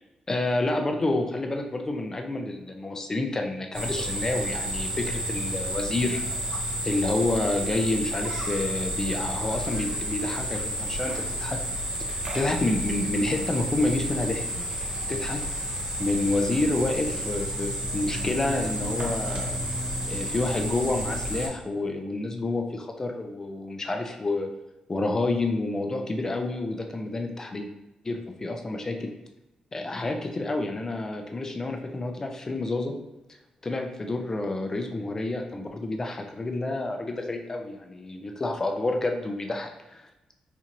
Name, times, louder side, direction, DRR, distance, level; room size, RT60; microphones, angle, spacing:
voice 1, 0.3-6.2 6.8-11.6 12.3-14.4 15.1-15.4 16.0-19.6 20.1-24.5 24.9-27.7 28.0-29.1 29.7-32.9 33.6-40.1, left 2 dB, 25° left, 3 dB, 0.4 m, -29 dB
sound 1, 3.7-21.5, equal, 45° right, 1.0 m, -31 dB
4.1 x 2.5 x 3.0 m, 0.97 s
wide cardioid pair, 135°, 2 cm